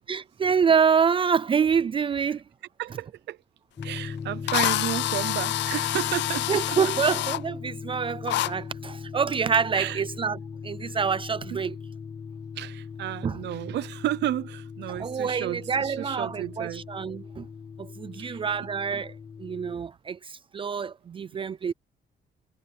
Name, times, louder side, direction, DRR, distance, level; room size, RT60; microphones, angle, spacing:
voice 1, 0.1-2.4 6.5-11.8 13.2-13.4 14.9-17.5 17.8-19.1 19.4-21.7, right 6 dB, 30° right, 0.4 m, -26 dB
voice 2, 2.8-3.4 3.8-6.8 9.7-10.0 10.8-11.0 12.6-16.8 18.2-18.4, right 14 dB, 75° right, 0.7 m, -32 dB
Drill, 3.8-3.9 4.5-7.4 8.3-8.5, left 15 dB, 80° left, 0.5 m, -27 dB
sound 1, 3.8-19.8, left 6 dB, 25° left, 0.6 m, -39 dB
cardioid pair, 155°, 18 cm